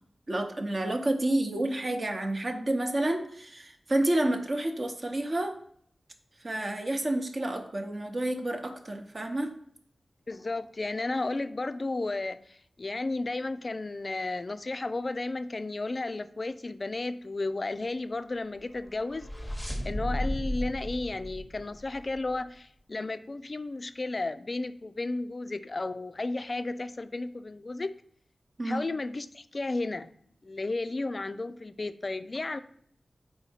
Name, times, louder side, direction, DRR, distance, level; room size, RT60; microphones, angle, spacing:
voice 1, 0.3-5.5 6.4-9.5 28.6-28.8, right 1 dB, 40° right, 5 dB, 0.8 m, -29 dB
voice 2, 10.3-28.0 28.6-30.1 30.4-32.6, left 2 dB, 40° left, 12 dB, 0.3 m, -33 dB
sound 1, 18.7-22.3, equal, 5° left, 0.8 m, -35 dB
4.4 x 4.1 x 5.6 m, 0.64 s
wide cardioid pair, 120°, 0 cm